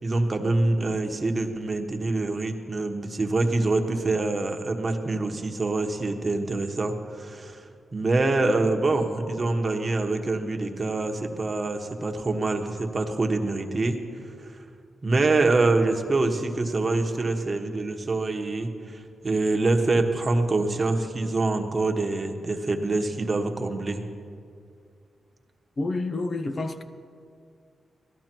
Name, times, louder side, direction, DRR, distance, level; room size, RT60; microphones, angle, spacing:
voice 1, 0.0-7.6 7.9-14.0 14.4-14.6 15.0-24.0, right 2 dB, 35° right, 1.2 m, -25 dB
voice 2, 25.8-26.8, left 2 dB, 40° left, 0.7 m, -29 dB
17.5 x 13.0 x 4.5 m
cardioid pair, 100°, 0 cm